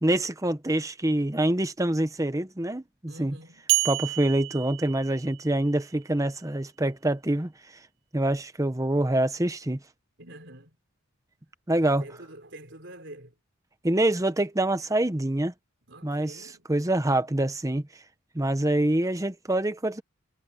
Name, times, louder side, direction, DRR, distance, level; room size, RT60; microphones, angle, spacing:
voice 1, 0.0-3.4 3.8-7.5 8.1-9.8 11.7-12.0 13.8-15.5 16.0-17.9 18.3-20.0, right 1 dB, 15° right, 0.9 m, -25 dB
voice 2, 3.1-3.7 10.2-10.7 12.0-13.3 15.9-16.7 18.4-18.5, right 1 dB, 55° right, 4.2 m, -46 dB
sound 1, 3.7-5.8, right 18 dB, 75° right, 0.8 m, -29 dB
head